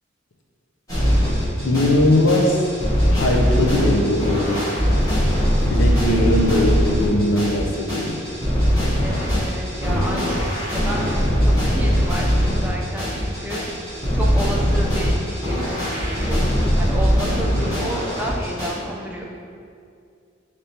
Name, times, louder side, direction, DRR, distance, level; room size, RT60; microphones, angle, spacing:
sound 1, 0.9-18.7, equal, 20° left, 1.2 m, -21 dB
voice 1, 1.6-2.7 3.1-4.7 5.7-8.2, left 1 dB, 70° left, 1 dB, 0.5 m, -20 dB
voice 2, 9.0-11.1 11.4-13.6 14.1-16.4 16.8-19.2, right 1 dB, 10° right, -2 dB, 0.4 m, -31 dB
5.0 x 3.3 x 2.8 m, 2.3 s
head